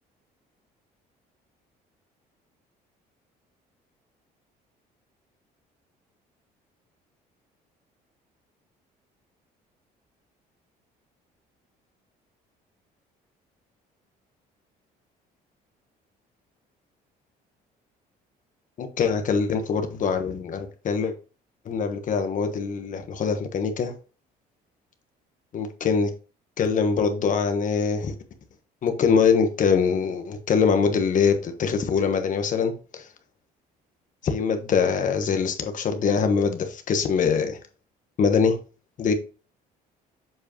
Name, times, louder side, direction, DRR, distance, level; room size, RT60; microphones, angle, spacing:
voice 1, 18.8-21.1 21.6-23.9 25.5-26.1 26.6-28.1 28.8-33.1 34.2-37.6 38.2-38.6 39.0-39.1, left 6 dB, 50° left, 1.2 m, -23 dB
7.8 x 4.8 x 3.0 m
cardioid pair, 110°, 17 cm